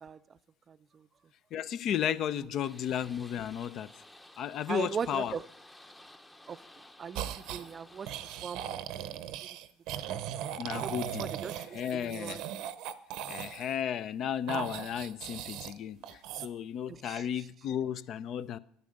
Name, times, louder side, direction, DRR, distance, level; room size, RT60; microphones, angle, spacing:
voice 1, 0.7-1.1 4.7-5.4 6.5-6.6 7.0-8.1 8.4-8.6 9.0-9.1 10.7-10.9 11.2-12.4 16.9-17.3, right 7 dB, 35° right, 15 dB, 0.4 m, -38 dB
voice 2, 1.5-3.9 4.4-5.4 10.6-11.3 11.7-12.4 13.3-18.6, left 9 dB, 55° left, 16 dB, 0.5 m, -34 dB
sound 1, 2.6-8.4, left 1 dB, 10° left, 0.8 m, -54 dB
sound 2, 7.1-7.7 8.1-13.7 14.5-15.8 16.0-16.5, right 11 dB, 70° right, 0.7 m, -38 dB
10.5 x 8.7 x 6.5 m, 0.69 s
supercardioid pair, 95°, 0 cm